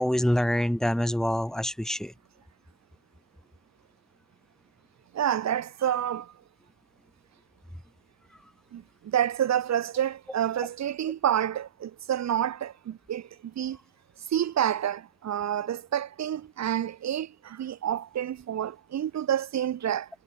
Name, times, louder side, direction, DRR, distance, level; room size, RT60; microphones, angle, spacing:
voice 1, 0.0-2.1, equal, ahead, 2.0 m, -25 dB
voice 2, 5.1-6.3 8.7-13.3 13.6-13.8 14.3-20.1, right 10 dB, 60° right, 2.9 m, -28 dB
cardioid pair, 90°, 30 cm